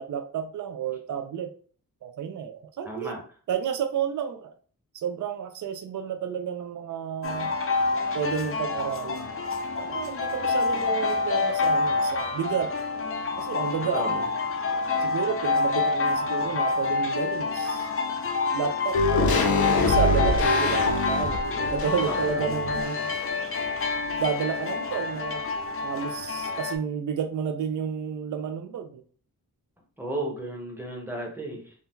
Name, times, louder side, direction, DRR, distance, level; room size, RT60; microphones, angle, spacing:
voice 1, 0.0-1.5 2.0-3.2 3.5-4.5 4.9-7.5 8.1-9.4 9.8-12.7 13.4-14.2 15.0-17.9 18.5-23.1 24.1-25.4 25.8-29.0, right 8 dB, 55° right, 0.4 m, -31 dB
voice 2, 2.8-3.2 13.9-14.2 22.0-22.8 30.0-31.7, right 1 dB, 5° right, 0.9 m, -34 dB
sound 1, 7.2-26.7, left 3 dB, 40° left, 0.4 m, -27 dB
sound 2, 18.9-23.4 23.7-23.8, left 2 dB, 80° left, 0.6 m, -25 dB
2.7 x 2.3 x 3.6 m
wide cardioid pair, 120°, 36 cm